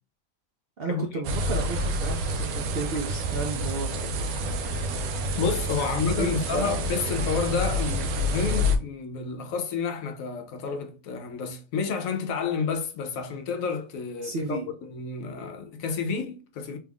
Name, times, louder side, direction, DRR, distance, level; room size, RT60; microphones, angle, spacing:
voice 1, 0.8-4.3 5.8-5.9 6.2-6.8 14.2-14.7, right 2 dB, 60° right, 0.6 m, -33 dB
sound 1, 1.2-8.8, equal, 85° right, 1.1 m, -28 dB
voice 2, 4.5-5.0 5.4-16.8, left 5 dB, 75° left, 1.0 m, -30 dB
3.1 x 2.3 x 3.4 m
omnidirectional pair, 1.5 m